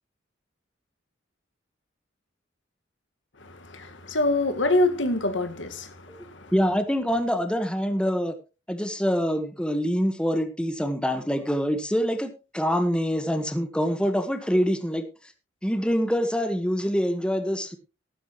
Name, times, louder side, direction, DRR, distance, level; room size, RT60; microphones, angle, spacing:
voice 1, 3.4-6.5, left 2 dB, 75° left, 1.8 m, -26 dB
voice 2, 6.5-8.3 8.7-15.0 15.6-17.8, equal, 5° left, 1.3 m, -25 dB
14.0 x 12.5 x 3.1 m
head